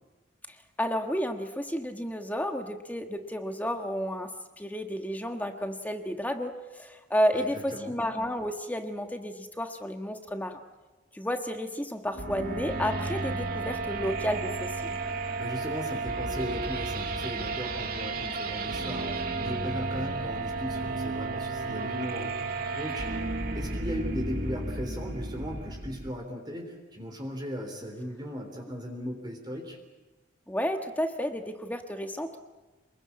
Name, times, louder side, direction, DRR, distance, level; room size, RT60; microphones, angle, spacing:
voice 1, 0.5-4.3 4.6-10.6 11.1-14.9 30.5-32.4, equal, 10° left, 5 dB, 1.4 m, -31 dB
voice 2, 7.3-8.0 15.4-22.4 22.7-23.2 23.5-29.8, equal, 25° right, 2 dB, 3.6 m, -37 dB
sound 1, 12.1-26.1, right 3 dB, 50° right, 2.6 m, -33 dB
27.5 x 21.5 x 8.7 m, 1.2 s
head